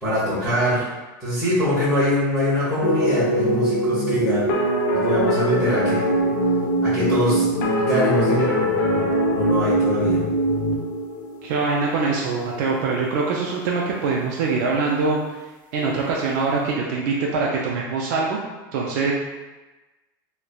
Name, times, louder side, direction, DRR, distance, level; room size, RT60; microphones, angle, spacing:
voice 1, 0.0-0.9 1.2-4.5 4.9-6.1 6.8-7.4 7.8-10.2, equal, 5° left, -14 dB, 0.9 m, -23 dB
sound 1, 2.8-12.1, right 1 dB, 85° left, 0.5 m, -22 dB
voice 2, 11.4-15.2 15.7-18.4 18.7-19.1, right 4 dB, 65° right, -3 dB, 0.4 m, -23 dB
3.1 x 2.1 x 2.3 m, 1.1 s
supercardioid pair, 150°, 11 cm